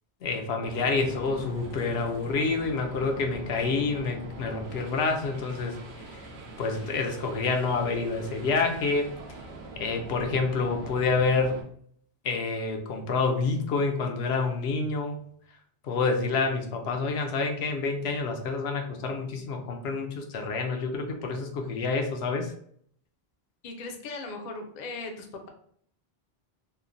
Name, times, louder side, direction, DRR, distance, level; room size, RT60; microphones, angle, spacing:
voice 1, 0.2-5.8 6.1-6.2 6.6-9.1 9.8-11.6 12.2-15.2 15.8-22.5, left 4 dB, 80° left, 3 dB, 0.8 m, -28 dB
sound 1, 0.6-11.6, right 2 dB, 80° right, 0.9 m, -43 dB
voice 2, 23.6-25.5, left 3 dB, 55° left, 4 dB, 0.5 m, -38 dB
3.1 x 2.1 x 2.5 m, 0.62 s
omnidirectional pair, 1.1 m